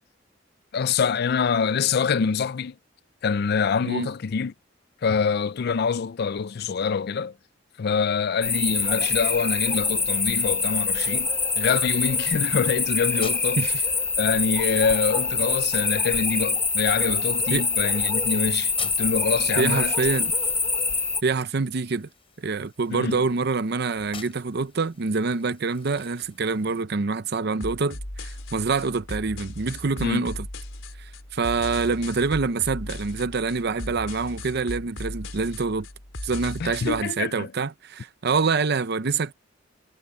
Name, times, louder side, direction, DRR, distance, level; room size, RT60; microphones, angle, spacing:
voice 1, 0.7-2.7 3.2-4.5 5.0-7.3 7.8-11.3 11.6-13.6 14.2-19.9 22.9-23.2 30.0-30.3 36.6-37.5, left 5 dB, 55° left, 0.4 m, -25 dB
sound 1, 8.4-21.2, left 4 dB, 10° left, 1.0 m, -25 dB
sound 2, 8.5-26.8, left 6 dB, 30° left, 6.1 m, -50 dB
voice 2, 19.6-20.3 21.2-22.1 22.4-30.5 31.0-35.9 36.2-39.3, right 4 dB, 55° right, 0.7 m, -26 dB
sound 3, 27.6-37.0, left 1 dB, 85° left, 4.5 m, -37 dB
head